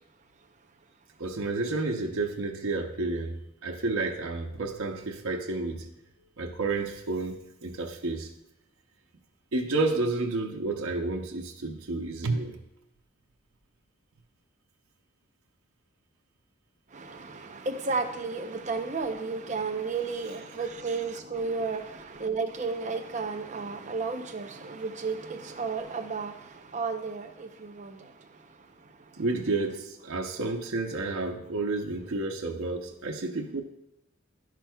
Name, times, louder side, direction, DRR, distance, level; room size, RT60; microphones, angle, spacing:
voice 1, 1.2-3.4 3.6-5.9 6.4-8.3 9.5-12.6 29.2-33.6, right 3 dB, 85° right, 2 dB, 0.8 m, -30 dB
voice 2, 16.9-28.1, right 4 dB, 35° right, 4 dB, 0.7 m, -33 dB
11.0 x 6.0 x 2.3 m, 0.86 s
head